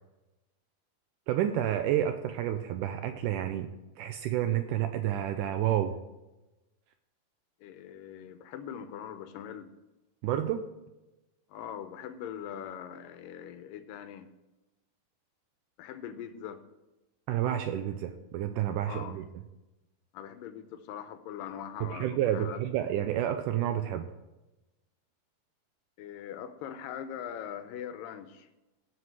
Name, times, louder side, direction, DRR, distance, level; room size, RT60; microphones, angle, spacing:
voice 1, 1.3-3.7 4.0-6.0 10.2-10.7 17.3-19.3 21.8-24.1, right 11 dB, 90° right, 8 dB, 1.8 m, -30 dB
voice 2, 7.6-9.7 11.5-14.3 15.8-16.6 18.8-19.2 20.1-22.6 26.0-28.5, left 9 dB, 75° left, 10 dB, 2.3 m, -42 dB
17.0 x 6.3 x 4.7 m, 1.0 s
omnidirectional pair, 4.3 m